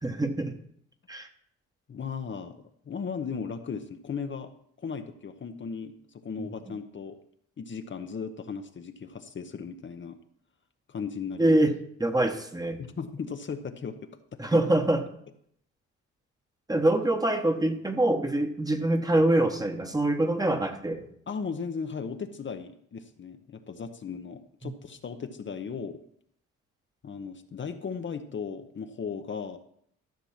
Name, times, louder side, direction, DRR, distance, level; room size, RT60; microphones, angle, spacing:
voice 1, 0.0-0.6 1.1-1.3 6.4-6.7 11.4-12.8 14.4-15.0 16.7-21.0 24.6-24.7, right 1 dB, 10° right, 6 dB, 1.2 m, -25 dB
voice 2, 1.9-2.6 2.9-4.5 4.8-7.2 7.6-10.2 10.9-11.6 12.8-14.1 14.5-14.6 21.3-26.0 27.0-29.6, left 6 dB, 40° left, 7 dB, 0.9 m, -36 dB
13.5 x 5.9 x 5.9 m, 0.68 s
cardioid pair, 90°, 30 cm